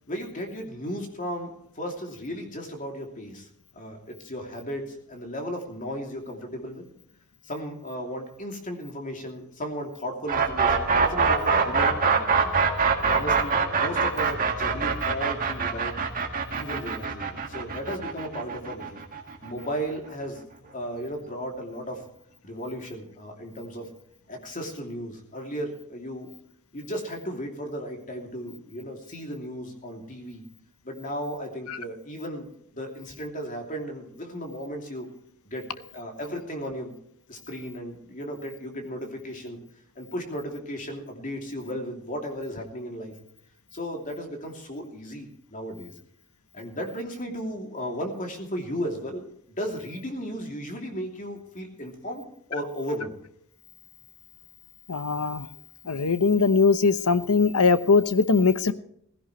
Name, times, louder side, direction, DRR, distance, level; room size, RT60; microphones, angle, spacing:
voice 1, 0.1-3.5 3.7-6.9 7.4-12.5 13.0-16.0 16.5-19.0 19.4-22.0 22.4-23.9 24.3-26.3 26.7-30.4 30.8-35.1 35.4-35.7 35.9-36.9 37.3-39.6 39.9-43.1 43.7-45.9 46.5-53.1, equal, 35° left, 2 dB, 2.9 m, -35 dB
sound 1, 10.3-20.1, right 5 dB, 40° right, 2.0 m, -24 dB
voice 2, 54.9-55.5 55.8-58.7, left 4 dB, 75° left, 13 dB, 0.9 m, -21 dB
17.0 x 16.0 x 3.2 m, 0.71 s
head